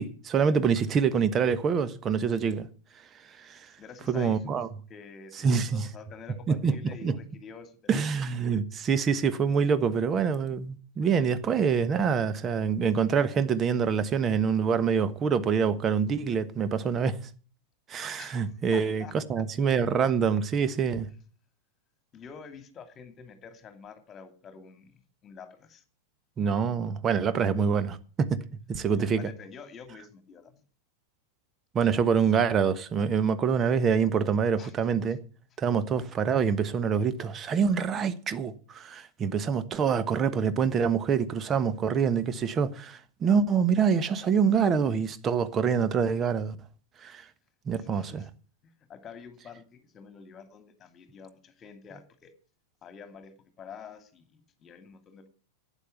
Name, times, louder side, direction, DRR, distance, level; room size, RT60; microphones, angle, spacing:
voice 1, 0.0-2.7 3.4-3.6 4.1-4.7 5.4-5.8 6.5-7.2 7.9-17.2 17.9-21.1 26.4-28.4 28.7-29.3 31.7-35.2 35.6-46.6 47.0-47.2 47.7-48.2, right 6 dB, 25° right, 1.2 m, -26 dB
voice 2, 3.8-4.6 4.9-8.0 18.2-19.1 22.1-25.8 27.5-27.6 28.9-30.6 34.6-34.7 47.8-48.3 48.6-52.3 52.8-55.3, left 6 dB, 25° left, 2.4 m, -48 dB
11.5 x 9.2 x 8.1 m
figure-of-eight pair, 90°, 0 cm